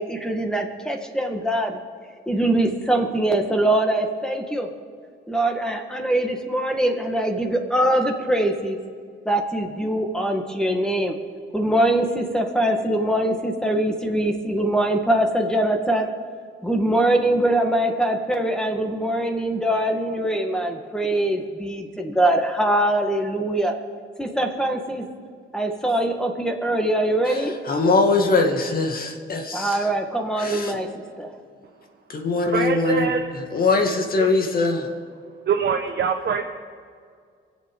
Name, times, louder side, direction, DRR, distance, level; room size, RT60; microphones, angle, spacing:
voice 1, 0.0-1.8 2.3-4.7 5.3-8.8 9.3-11.2 11.5-16.1 16.6-23.8 24.2-25.1 25.5-27.5 29.5-30.9 31.2-31.3, right 1 dB, 5° left, 3 dB, 1.9 m, -23 dB
voice 2, 27.2-29.9 30.4-30.8 32.1-34.9, left 3 dB, 50° left, 3 dB, 2.1 m, -22 dB
voice 3, 32.5-33.3 34.2-34.3 35.5-36.5, right 7 dB, 60° right, 2 dB, 1.1 m, -23 dB
24.0 x 8.2 x 5.5 m, 2.1 s
cardioid pair, 90°, 20 cm